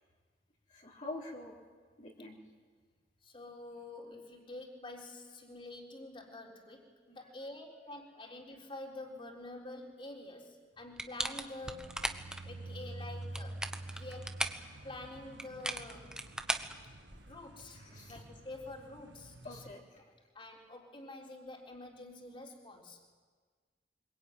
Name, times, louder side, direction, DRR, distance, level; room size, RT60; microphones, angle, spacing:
voice 1, 0.7-1.6 2.0-2.4 7.2-7.3 13.9-14.1 17.7-18.2 19.4-19.8, left 2 dB, 45° left, -3 dB, 3.4 m, -45 dB
voice 2, 3.2-12.0 12.4-13.6 13.9-14.4 14.8-16.2 17.3-17.8 18.1-19.5 20.3-23.0, left 2 dB, 30° left, 0 dB, 3.8 m, -47 dB
sound 1, 11.0-12.4 13.2-14.7 15.4-17.4, right 1 dB, 5° right, 1.2 m, -38 dB
sound 2, 11.6-19.7, right 2 dB, 85° right, 1.6 m, -48 dB
25.0 x 23.0 x 9.2 m, 1.5 s
head